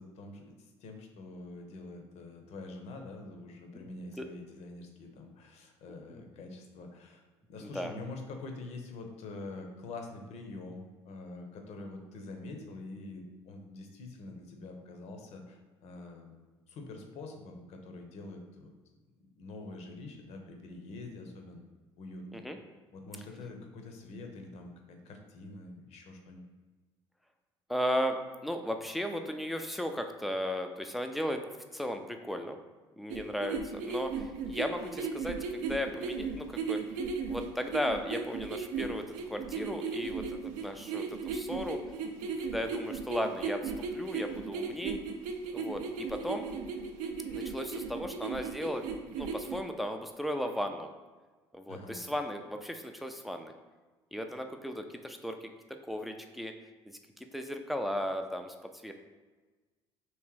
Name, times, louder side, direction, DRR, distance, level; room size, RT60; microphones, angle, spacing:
voice 1, 0.0-7.2 7.5-16.4 16.7-18.7 19.4-21.6 22.0-22.4 22.9-26.4 51.7-52.0, left 2 dB, 50° left, 4 dB, 0.7 m, -45 dB
voice 2, 7.6-7.9 22.3-22.6 27.7-31.4 31.7-32.6 33.0-36.8 37.3-41.8 42.4-45.0 45.5-46.5 47.3-50.9 51.5-53.5 54.1-56.5 57.2-58.5 58.8-58.9, equal, ahead, 5 dB, 0.4 m, -36 dB
sound 1, 33.1-49.6, right 5 dB, 55° right, 0.5 m, -36 dB
3.2 x 3.0 x 4.6 m, 1.3 s
figure-of-eight pair, 55°, 14 cm